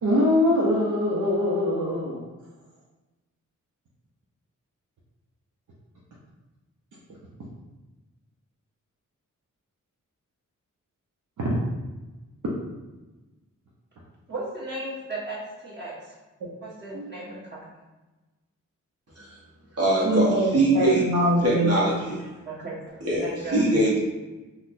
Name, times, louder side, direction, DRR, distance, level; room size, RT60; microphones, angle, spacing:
voice 1, 0.0-2.3 11.4-11.5 16.4-16.5 16.9-17.1 20.0-21.7, equal, 70° right, -5 dB, 0.7 m, -23 dB
voice 2, 14.3-16.1 16.6-17.6 22.5-22.9 23.2-23.7, right 2 dB, 35° right, -7 dB, 1.3 m, -35 dB
voice 3, 19.7-21.0 21.4-22.2 23.0-24.0, right 1 dB, 50° right, -5 dB, 1.0 m, -22 dB
4.0 x 2.1 x 2.6 m, 1.1 s
cardioid pair, 85°, 32 cm